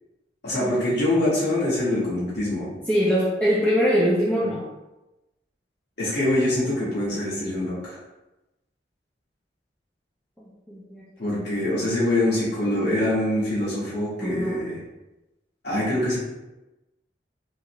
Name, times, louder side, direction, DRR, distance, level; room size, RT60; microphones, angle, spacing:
voice 1, 0.4-2.7 4.4-4.5 6.0-8.0 11.2-14.8 15.6-16.2, left 1 dB, 65° left, -9 dB, 1.4 m, -24 dB
voice 2, 2.9-4.6 10.4-11.0 14.2-14.6, equal, 10° left, -9 dB, 0.6 m, -23 dB
3.6 x 2.3 x 3.0 m, 1.0 s
head